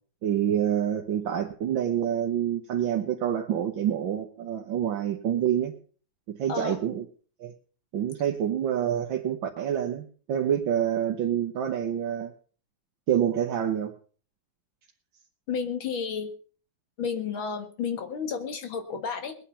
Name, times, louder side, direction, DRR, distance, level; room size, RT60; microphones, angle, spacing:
voice 1, 0.2-5.7 6.4-7.1 7.4-7.5 7.9-12.3 13.1-13.9, right 10 dB, 75° right, 1.8 m, -27 dB
voice 2, 15.5-16.3 17.0-19.4, left 6 dB, 85° left, 2.7 m, -31 dB
20.5 x 9.1 x 5.6 m
omnidirectional pair, 2.1 m